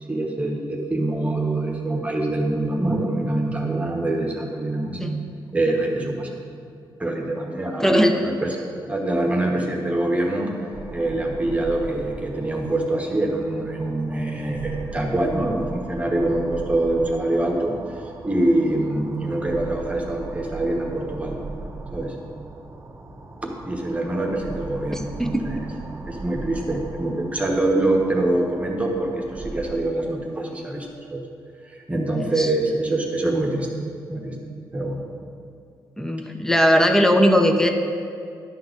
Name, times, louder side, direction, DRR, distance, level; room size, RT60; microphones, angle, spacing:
voice 1, 0.1-5.0 5.5-6.4 7.0-8.6 8.9-10.5 10.9-17.7 18.2-21.4 21.9-22.2 23.4-25.6 26.0-31.2 31.7-33.7 34.1-34.3 34.7-35.0, right 2 dB, 15° right, 0 dB, 1.2 m, -24 dB
voice 2, 7.8-8.2 24.9-25.3 32.4-32.5 36.0-37.7, equal, 5° left, 5 dB, 0.7 m, -19 dB
sound 1, 10.7-29.8, right 3 dB, 30° right, 0.8 m, -38 dB
10.5 x 3.9 x 6.6 m, 2.4 s
cardioid pair, 85°, 8 cm